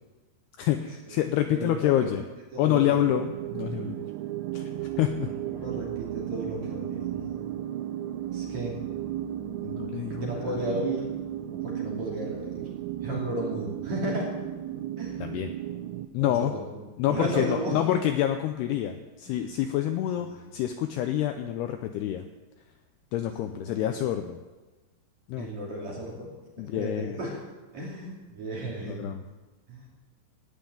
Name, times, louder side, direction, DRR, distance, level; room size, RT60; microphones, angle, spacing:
voice 1, 0.6-2.2 2.6-4.0 4.5-5.3 9.6-10.3 15.2-15.5 16.1-16.5 17.0-22.3 23.1-24.4 25.3-25.5 26.6-27.2 28.9-29.2, left 12 dB, 80° left, 7 dB, 2.4 m, -27 dB
voice 2, 1.5-2.1 2.5-3.1 5.2-7.2 8.3-8.8 10.2-11.1 11.5-12.7 13.0-14.3 15.0-15.2 16.2-16.8 17.1-17.8 19.2-19.3 20.2-20.3 23.5-23.8 25.4-26.3 26.7-27.4 27.7-29.2 29.7-29.9, right 1 dB, 40° right, -3 dB, 3.7 m, -34 dB
sound 1, 3.1-16.1, right 12 dB, 85° right, 2.7 m, -35 dB
17.0 x 5.7 x 9.0 m, 1.2 s
omnidirectional pair, 5.3 m